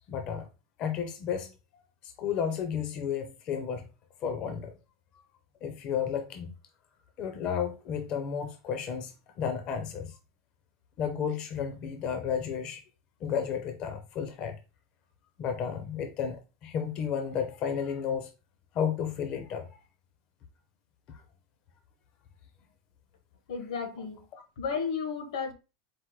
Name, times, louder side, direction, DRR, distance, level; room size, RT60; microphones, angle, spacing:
voice 1, 0.1-0.5 0.8-1.5 2.0-3.8 4.2-4.7 5.2-5.3 5.6-6.5 7.2-10.1 11.0-12.8 13.2-14.6 15.4-18.3 18.7-19.7 21.1-21.2, left 7 dB, 30° left, 0.4 m, -32 dB
voice 2, 23.5-24.2 24.6-25.5, left 6 dB, 85° left, 1.1 m, -33 dB
4.5 x 2.1 x 4.5 m
supercardioid pair, 175°, 3 cm